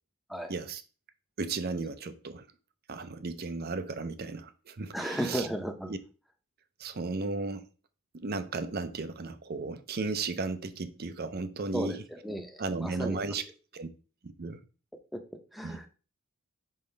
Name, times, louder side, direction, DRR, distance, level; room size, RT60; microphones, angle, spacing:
voice 1, 0.5-0.8 1.4-2.5 2.9-5.5 5.9-6.0 6.8-7.7 8.2-11.9 12.6-13.4 13.7-13.9 14.2-14.6 15.6-15.8, right 3 dB, 45° right, 0.6 m, -35 dB
voice 2, 4.9-5.9 11.7-13.4 15.1-15.2 15.5-15.9, equal, ahead, 0.7 m, -35 dB
5.6 x 5.1 x 3.3 m
head